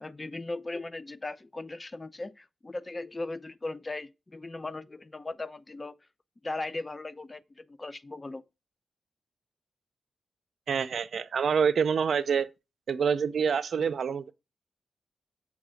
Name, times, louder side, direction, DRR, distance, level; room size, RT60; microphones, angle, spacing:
voice 1, 0.0-5.9 6.4-8.4, left 2 dB, 30° left, 0.6 m, -38 dB
voice 2, 10.7-12.5 12.9-14.3, right 6 dB, 70° right, 0.5 m, -26 dB
7.4 x 3.5 x 6.2 m
cardioid pair, 50°, 0 cm